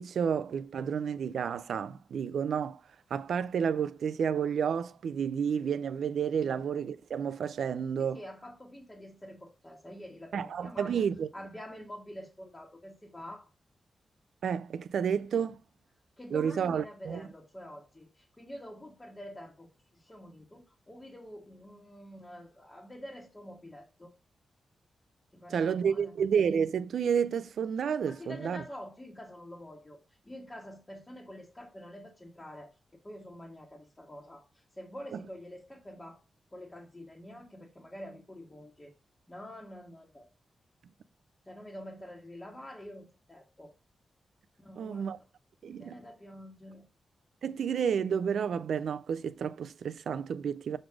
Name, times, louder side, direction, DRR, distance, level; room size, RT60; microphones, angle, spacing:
voice 1, 0.0-2.8 3.1-8.2 10.3-11.3 14.4-15.6 16.3-17.3 25.5-28.6 44.8-45.2 45.6-46.0 47.4-50.8, right 7 dB, 80° right, 0.5 m, -30 dB
voice 2, 8.0-11.1 11.3-13.5 16.2-24.1 25.3-26.2 28.1-32.8 33.0-36.2 36.5-38.9 39.3-40.3 41.5-43.7 44.6-45.3 45.6-46.8, equal, 15° left, 1.4 m, -47 dB
6.5 x 4.0 x 4.7 m
wide cardioid pair, 130°, 0 cm